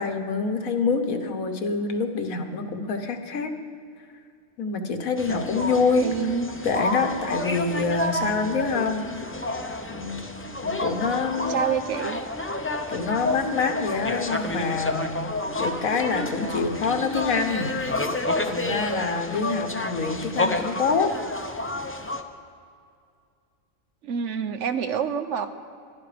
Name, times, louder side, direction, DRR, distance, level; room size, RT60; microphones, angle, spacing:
voice 1, 0.0-3.5 4.6-6.1 6.6-9.0 9.9-10.3 10.6-11.7 12.6-15.1 15.6-17.7 18.4-21.2, left 4 dB, 90° left, 6 dB, 1.6 m, -26 dB
sound 1, 5.2-22.2, left 2 dB, 15° left, 0.5 m, -30 dB
voice 2, 6.0-6.5 11.5-12.2 24.0-25.5, right 7 dB, 65° right, 9 dB, 1.1 m, -27 dB
22.0 x 12.0 x 5.1 m, 2.3 s
omnidirectional pair, 1.4 m